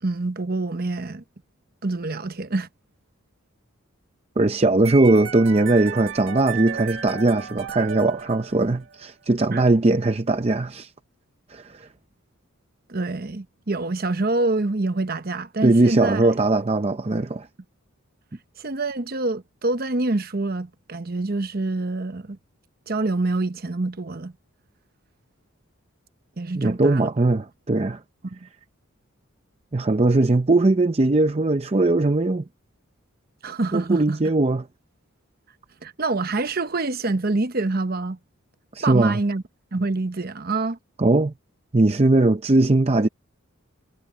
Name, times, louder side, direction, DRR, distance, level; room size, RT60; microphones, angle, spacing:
voice 1, 0.0-1.2 1.8-2.7 9.5-9.6 12.9-16.3 18.6-22.4 22.9-24.3 26.4-27.1 28.2-28.5 33.4-34.2 35.8-38.2 38.8-39.4 39.7-40.8, right 2 dB, 45° right, 1.0 m, -26 dB
voice 2, 4.4-10.9 11.5-11.9 15.6-17.5 26.5-28.0 29.7-32.4 33.7-34.7 38.7-39.2 41.0-41.3 41.7-43.1, right 2 dB, 30° right, 0.6 m, -20 dB
sound 1, 4.8-9.0, right 7 dB, 65° right, 1.3 m, -34 dB
head